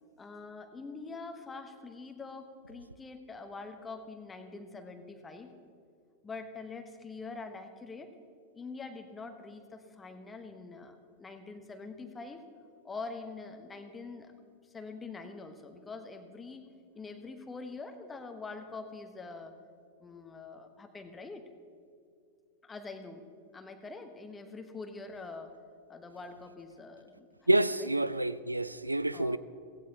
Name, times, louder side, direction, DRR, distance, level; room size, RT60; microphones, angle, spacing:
voice 1, 0.2-5.5 6.2-8.1 8.5-12.5 12.8-14.3 14.7-16.7 16.9-19.5 20.0-21.4 22.6-23.3 23.5-25.5 25.9-27.3 27.8-28.0 29.1-29.4, left 4 dB, 15° left, 1.3 m, -44 dB
voice 2, 27.5-29.4, right 1 dB, 85° right, 0.4 m, -28 dB
17.0 x 16.0 x 2.9 m
figure-of-eight pair, 90°, 0 cm